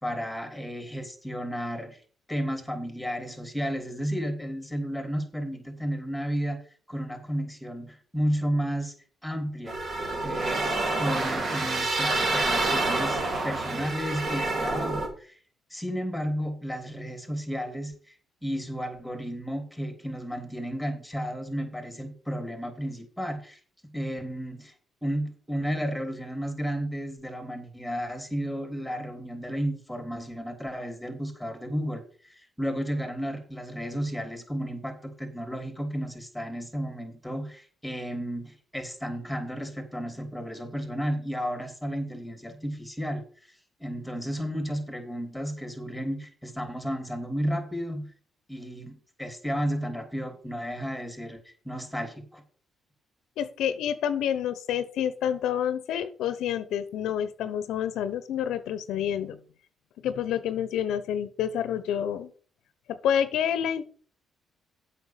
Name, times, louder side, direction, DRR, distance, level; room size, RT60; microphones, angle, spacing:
voice 1, 0.0-2.0 2.3-6.6 6.9-8.9 9.2-9.8 10.2-10.7 10.9-15.4 15.7-18.2 18.4-23.6 23.9-24.7 25.0-48.1 48.5-52.4, equal, ahead, 6 dB, 3.4 m, -33 dB
sound 1, 9.7-15.1, right 2 dB, 45° right, 3.1 m, -28 dB
voice 2, 53.4-59.4 60.0-62.3 62.9-64.0, left 9 dB, 85° left, 13 dB, 0.8 m, -28 dB
8.2 x 5.8 x 7.4 m, 0.43 s
cardioid pair, 90°, 0 cm